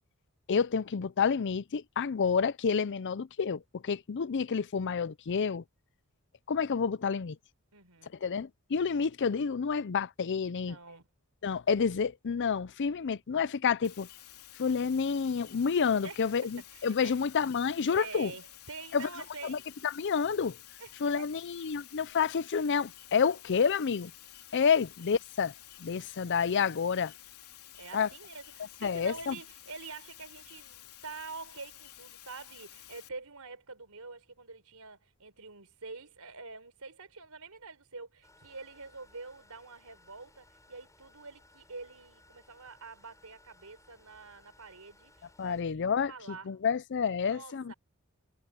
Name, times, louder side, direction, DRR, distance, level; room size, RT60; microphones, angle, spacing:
voice 1, 0.5-5.6 6.5-7.4 8.2-10.8 11.4-14.1 14.6-18.3 18.9-19.1 19.4-20.6 21.0-24.1 24.5-25.5 25.8-27.1 27.9-28.1 28.8-29.4 45.4-47.7, left 6 dB, 55° left, 0.5 m, -29 dB
voice 2, 7.7-8.1 10.6-11.1 16.0-17.1 17.9-19.6 20.8-21.3 27.8-46.5 47.3-47.7, right 4 dB, 85° right, 4.1 m, -47 dB
sound 1, 13.8-33.1, left 13 dB, 85° left, 3.4 m, -52 dB
sound 2, 38.2-45.6, left 2 dB, 15° left, 5.3 m, -62 dB
head